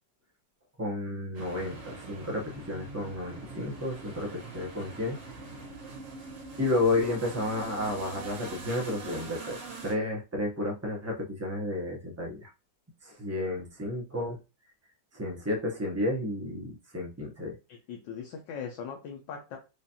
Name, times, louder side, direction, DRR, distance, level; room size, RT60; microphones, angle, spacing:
voice 1, 0.8-5.2 6.6-12.5 13.0-14.4 15.1-17.6, left 2 dB, 15° right, 0 dB, 0.5 m, -32 dB
sound 1, 1.3-9.9, right 3 dB, 80° right, 1.8 m, -43 dB
voice 2, 17.7-19.6, left 7 dB, 80° left, 1 dB, 1.5 m, -40 dB
4.9 x 2.6 x 2.8 m, 0.29 s
omnidirectional pair, 2.0 m